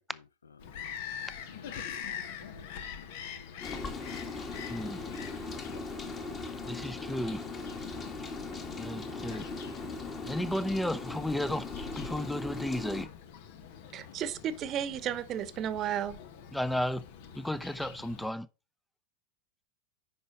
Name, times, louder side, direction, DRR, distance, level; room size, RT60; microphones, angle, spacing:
Bird vocalization bird call bird song, 0.6-18.3, left 8 dB, 60° left, 1.3 m, -45 dB
voice 1, 1.5-3.5 4.1-4.2, left 4 dB, 85° left, 0.5 m, -54 dB
Rain, 3.6-13.1, left 3 dB, 30° left, 2.4 m, -39 dB
voice 2, 4.7-5.0 6.6-7.4 8.8-9.5 10.2-13.1 16.5-17.0 17.3-18.5, left 1 dB, 5° left, 0.6 m, -33 dB
voice 3, 13.9-16.2, right 9 dB, 40° right, 1.0 m, -33 dB
9.6 x 5.7 x 4.3 m
hypercardioid pair, 90°, 0 cm